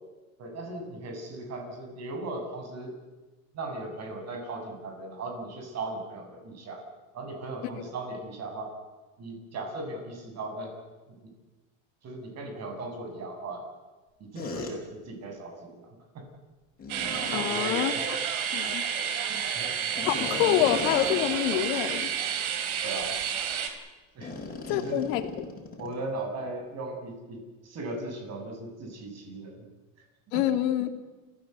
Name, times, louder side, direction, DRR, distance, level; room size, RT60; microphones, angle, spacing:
voice 1, 0.4-3.0 3.5-6.8 7.1-8.7 9.2-10.7 11.1-11.2 12.0-13.6 14.2-16.2 17.3-18.0 19.3-19.8 22.8-23.3 24.1-24.3 24.7-25.0 25.8-29.7 30.3-30.4, right 2 dB, 35° right, 3 dB, 8.0 m, -37 dB
sound 1, 14.3-14.7 16.8-17.5 19.9-21.7 22.0-22.2 22.8-22.9 24.2-26.0, left 3 dB, 20° left, 5.9 m, -37 dB
sound 2, 16.9-23.7, right 8 dB, 80° right, 4.0 m, -30 dB
voice 2, 17.3-17.9 18.5-18.8 20.0-22.1 24.7-25.3 30.3-31.0, left 12 dB, 65° left, 8 dB, 2.7 m, -26 dB
29.0 x 16.5 x 8.3 m, 1.2 s
supercardioid pair, 130°, 43 cm